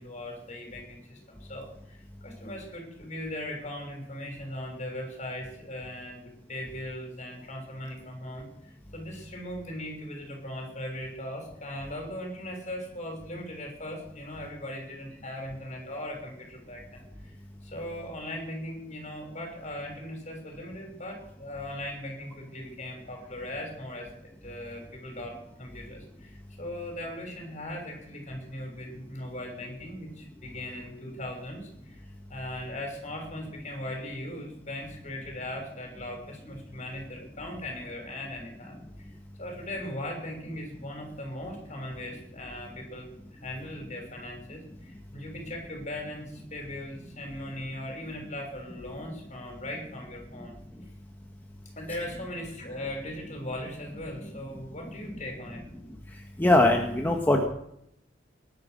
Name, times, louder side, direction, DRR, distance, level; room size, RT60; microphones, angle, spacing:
voice 1, 0.0-17.3 17.6-38.8 39.4-50.5 51.8-55.6, left 1 dB, 40° left, 2 dB, 6.2 m, -39 dB
voice 2, 56.4-57.5, left 1 dB, 10° left, 1 dB, 1.6 m, -21 dB
19.5 x 11.5 x 6.5 m, 0.77 s
head